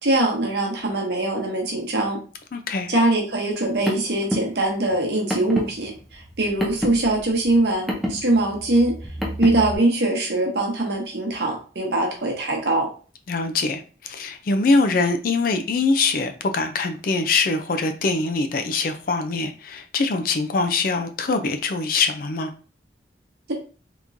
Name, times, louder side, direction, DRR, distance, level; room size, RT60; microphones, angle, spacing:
voice 1, 0.0-2.2 2.9-9.0 9.4-12.9, right 2 dB, 60° right, 0 dB, 1.0 m, -22 dB
voice 2, 2.5-2.9 13.3-22.5, left 3 dB, 50° left, 7 dB, 0.4 m, -23 dB
Car, 3.5-9.7, equal, ahead, 0.5 m, -30 dB
3.5 x 3.0 x 2.6 m, 0.38 s
head